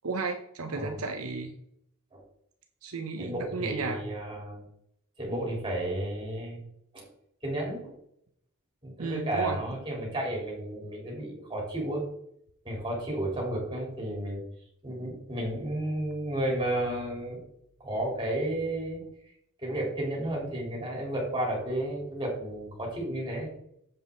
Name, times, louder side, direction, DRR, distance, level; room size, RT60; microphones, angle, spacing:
voice 1, 0.0-1.5 2.8-4.0 9.0-9.6, right 4 dB, 80° right, 5 dB, 0.9 m, -33 dB
voice 2, 0.7-1.0 2.1-2.2 3.2-4.6 5.2-6.6 6.9-7.1 7.4-7.9 8.8-12.0 12.6-14.4 14.8-17.4 17.8-19.1 19.6-23.5, right 1 dB, 20° right, -2 dB, 3.7 m, -32 dB
7.8 x 7.2 x 3.9 m, 0.73 s
head